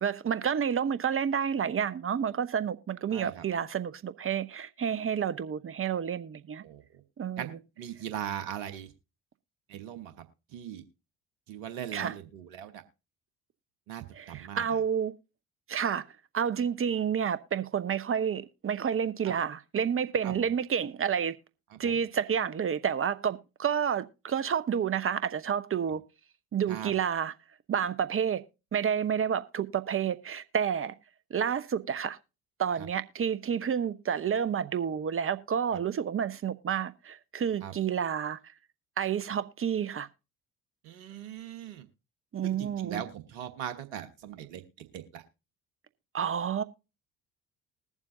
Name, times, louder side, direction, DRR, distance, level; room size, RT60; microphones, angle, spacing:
voice 1, 0.0-6.6 7.2-7.5 11.9-12.1 14.1-15.1 15.7-16.0 16.3-21.4 21.8-26.0 26.5-27.3 27.7-28.4 28.7-30.9 31.3-32.2 32.6-38.4 39.0-40.1 42.3-43.0 46.1-46.6, right 8 dB, 30° right, 0.9 m, -30 dB
voice 2, 3.1-3.4 6.6-7.0 7.4-8.9 9.7-10.2 10.5-10.8 11.5-12.8 13.9-14.7 20.2-20.3 21.7-22.0 26.7-26.9 32.8-32.9 37.6-37.7 40.8-41.9 42.4-45.2, right 10 dB, 75° right, 1.2 m, -40 dB
20.5 x 7.3 x 2.6 m
hypercardioid pair, 50°, 41 cm